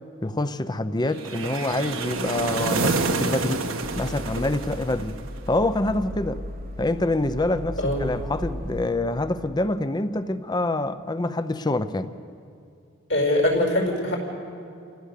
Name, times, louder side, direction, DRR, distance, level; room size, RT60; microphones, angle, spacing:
voice 1, 0.2-3.7 3.9-5.2 5.5-6.4 6.8-12.1, left 2 dB, 20° left, 12 dB, 0.7 m, -26 dB
sound 1, 1.2-5.4, right 3 dB, 90° right, 1.4 m, -28 dB
sound 2, 3.8-8.9, equal, 45° right, 1.0 m, -36 dB
voice 2, 13.1-14.2, left 1 dB, 65° left, 0 dB, 4.8 m, -22 dB
29.0 x 15.5 x 6.7 m, 2.5 s
head